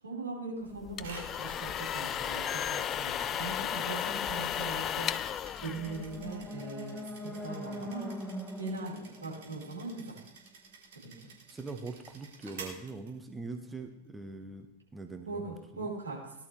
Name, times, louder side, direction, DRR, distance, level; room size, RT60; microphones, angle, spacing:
voice 1, 0.0-5.1 5.6-8.1 8.6-10.2 10.9-11.3 15.2-16.3, right 3 dB, 75° right, -4 dB, 4.8 m, -40 dB
sound 1, 0.8-6.5, left 9 dB, 30° left, 0.4 m, -34 dB
sound 2, 1.0-13.7, right 5 dB, 60° right, 3.4 m, -52 dB
sound 3, 5.4-10.5, equal, 5° left, 1.3 m, -43 dB
voice 2, 11.5-15.9, right 3 dB, 10° right, 6 dB, 1.0 m, -43 dB
18.5 x 11.5 x 3.3 m, 0.87 s
figure-of-eight pair, 90°, 0 cm